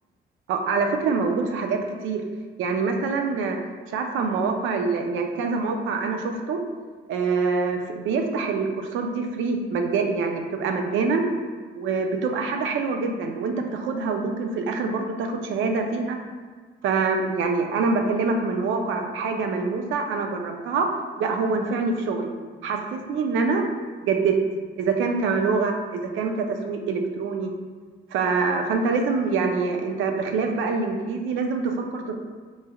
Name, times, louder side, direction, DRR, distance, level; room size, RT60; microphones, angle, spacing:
voice 1, 0.5-2.2 2.6-3.6 3.9-6.6 7.1-11.2 11.7-16.2 16.8-20.9 21.2-22.3 22.6-23.6 24.0-24.3 24.8-27.5 28.1-32.2, right 4 dB, 80° right, 3 dB, 0.5 m, -25 dB
4.4 x 3.2 x 2.3 m, 1.5 s
cardioid pair, 90°, 20 cm